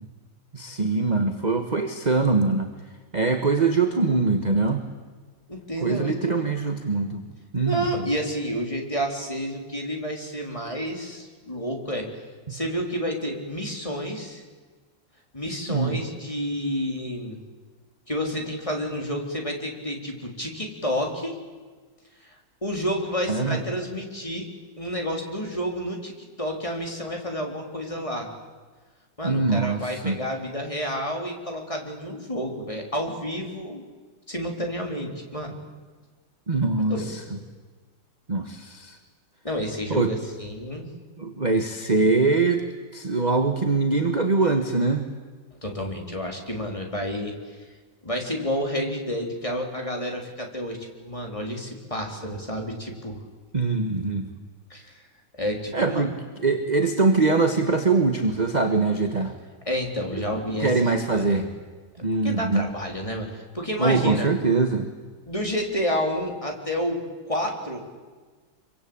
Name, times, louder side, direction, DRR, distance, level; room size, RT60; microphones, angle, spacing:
voice 1, 0.5-2.7 3.1-4.8 5.8-7.2 7.5-8.1 15.7-16.0 23.3-23.6 29.2-30.2 36.5-37.2 38.3-39.0 39.9-40.1 41.2-42.6 42.9-45.0 53.5-54.3 55.7-56.1 56.4-59.3 60.3-60.4 60.6-61.5 62.0-62.7 63.8-64.9, right 3 dB, 25° right, 6 dB, 1.5 m, -23 dB
voice 2, 5.5-6.2 7.6-12.1 12.5-14.4 15.3-17.4 18.1-21.4 22.2-22.4 22.6-24.5 24.8-28.3 29.2-33.8 34.3-35.6 36.7-37.1 39.4-40.9 45.6-47.6 48.0-53.2 54.7-55.0 55.4-56.1 59.7-60.8 61.1-61.5 62.2-64.3 65.3-68.0, equal, 15° left, 1 dB, 3.8 m, -30 dB
26.0 x 24.0 x 8.8 m, 1.4 s
omnidirectional pair, 2.1 m